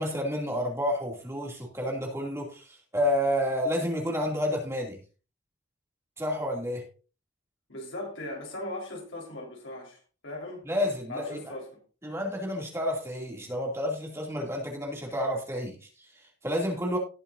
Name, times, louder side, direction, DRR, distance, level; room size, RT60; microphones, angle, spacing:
voice 1, 0.0-5.0 6.2-6.8 10.6-11.5 12.0-17.0, equal, 15° right, 2.6 m, -30 dB
voice 2, 7.7-10.6 11.1-11.7, left 1 dB, 80° left, 4.2 m, -38 dB
18.0 x 7.0 x 2.7 m
head